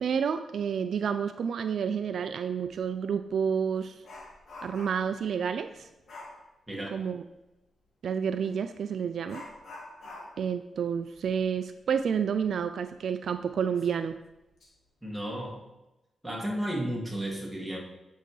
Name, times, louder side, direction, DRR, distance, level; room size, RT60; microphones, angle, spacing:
voice 1, 0.0-4.0 4.6-5.9 6.9-7.2 8.0-9.4 10.4-14.2, right 7 dB, 70° right, 9 dB, 0.3 m, -30 dB
Dog, 2.7-2.9 3.3-5.2 6.1-6.4 8.4-8.6 9.3-12.6 12.9-13.0 13.5-13.6 14.3-14.7 15.0-15.3, left 2 dB, 65° left, 2.1 m, -47 dB
voice 2, 6.7-7.0 15.0-15.6 16.2-17.8, equal, 5° right, -3 dB, 2.1 m, -33 dB
9.1 x 5.5 x 3.2 m, 0.96 s
cardioid pair, 85°, 0 cm